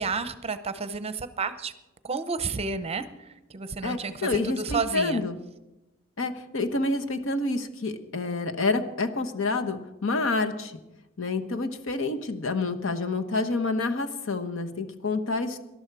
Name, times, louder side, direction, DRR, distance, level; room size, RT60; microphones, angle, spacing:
voice 1, 0.0-1.7 2.0-5.2, right 4 dB, 30° right, 12 dB, 0.7 m, -31 dB
voice 2, 3.8-5.4 6.2-10.8 11.2-15.6, left 3 dB, 65° left, 7 dB, 1.1 m, -28 dB
19.0 x 12.0 x 4.8 m, 0.98 s
head